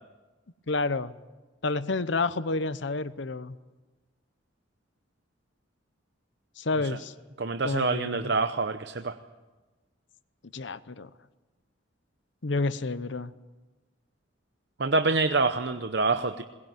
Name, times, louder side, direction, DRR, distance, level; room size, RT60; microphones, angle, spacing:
voice 1, 0.7-1.1 1.6-3.6 6.6-7.1 7.6-8.3 10.5-11.1 12.4-13.3, left 3 dB, 70° left, 15 dB, 0.8 m, -29 dB
voice 2, 7.4-9.2 14.8-16.4, right 3 dB, 60° right, 8 dB, 0.8 m, -26 dB
21.5 x 19.0 x 9.1 m, 1.2 s
head